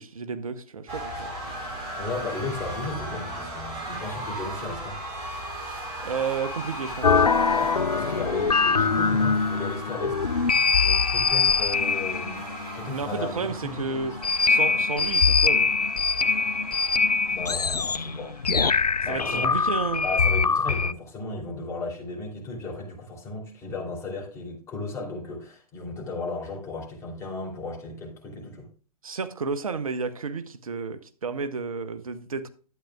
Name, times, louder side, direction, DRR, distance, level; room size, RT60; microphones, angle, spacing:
voice 1, 0.0-1.3 5.6-7.4 12.9-14.2 14.5-15.7 19.1-20.1 29.0-32.5, right 5 dB, 65° right, 0.8 m, -32 dB
sound 1, 0.9-20.0, right 1 dB, 25° right, 3.8 m, -38 dB
voice 2, 2.0-5.0 7.5-10.2 10.8-14.2 17.3-18.3 19.0-19.6 20.0-28.7, left 3 dB, 15° left, 3.1 m, -35 dB
sound 2, 7.0-20.9, left 4 dB, 90° left, 0.4 m, -23 dB
12.0 x 8.7 x 2.3 m
figure-of-eight pair, 120°, 20 cm